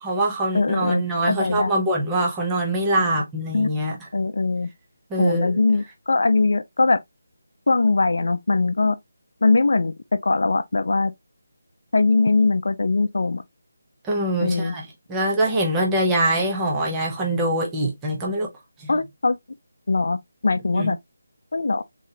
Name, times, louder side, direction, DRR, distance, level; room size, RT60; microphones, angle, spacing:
voice 1, 0.0-4.0 5.1-5.5 14.0-18.5 18.8-18.9 20.7-20.9, right 1 dB, 10° right, 0.7 m, -24 dB
voice 2, 0.5-1.7 3.0-3.1 3.5-3.7 4.1-4.7 5.2-7.0 7.7-9.0 9.4-11.1 11.9-13.4 14.4-14.8 18.9-19.4 19.9-20.2 20.4-21.0 21.5-21.8, left 3 dB, 60° left, 0.5 m, -21 dB
3.8 x 3.2 x 2.7 m
figure-of-eight pair, 175°, 0 cm